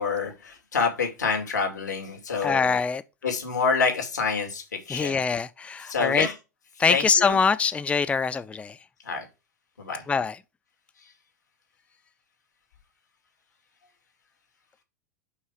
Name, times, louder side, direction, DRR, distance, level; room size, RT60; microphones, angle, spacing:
voice 1, 0.0-2.8 3.2-5.2 5.8-6.3 6.9-7.4 9.0-9.3 9.8-10.0, left 5 dB, 85° left, 2.5 m, -27 dB
voice 2, 2.4-3.0 4.9-6.3 6.8-8.8 10.1-10.4, left 5 dB, 15° left, 0.4 m, -24 dB
5.7 x 4.7 x 6.4 m
hypercardioid pair, 90°, 9 cm